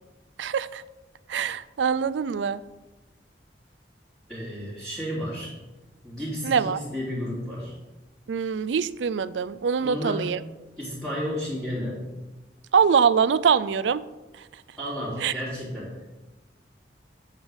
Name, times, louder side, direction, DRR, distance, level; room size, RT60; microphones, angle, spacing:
voice 1, 0.4-0.8 1.3-2.6 6.4-6.8 8.3-10.4 12.7-14.0 15.2-15.3, right 6 dB, 85° right, 17 dB, 0.4 m, -23 dB
voice 2, 4.3-5.5 6.0-7.7 9.8-10.3 10.8-12.0 14.8-15.9, equal, ahead, -11 dB, 3.1 m, -32 dB
8.2 x 5.2 x 7.1 m, 1.1 s
head